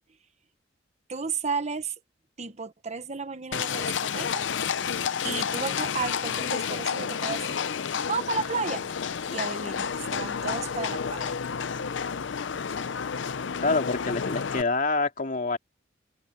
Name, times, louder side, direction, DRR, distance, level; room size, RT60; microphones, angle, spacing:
voice 1, 1.1-1.9 2.4-4.4 5.2-7.6 8.1-8.9 9.3-11.4, right 4 dB, 35° right, 1.2 m, -33 dB
Livestock farm animals working animals, 3.5-14.6, left 7 dB, 75° left, 0.6 m, -30 dB
voice 2, 13.6-15.6, left 3 dB, 45° left, 2.8 m, -27 dB
head